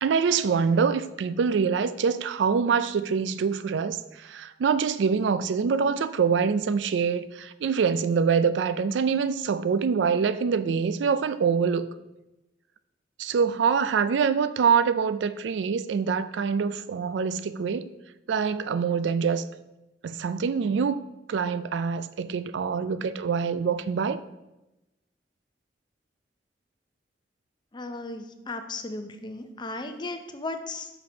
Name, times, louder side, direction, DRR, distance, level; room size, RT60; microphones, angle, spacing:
voice 1, 0.0-11.9 13.2-17.9 18.3-19.4 20.0-24.2, right 6 dB, 75° right, 0.4 m, -25 dB
voice 2, 27.7-30.9, left 2 dB, 25° left, 0.6 m, -36 dB
6.0 x 5.7 x 4.9 m
head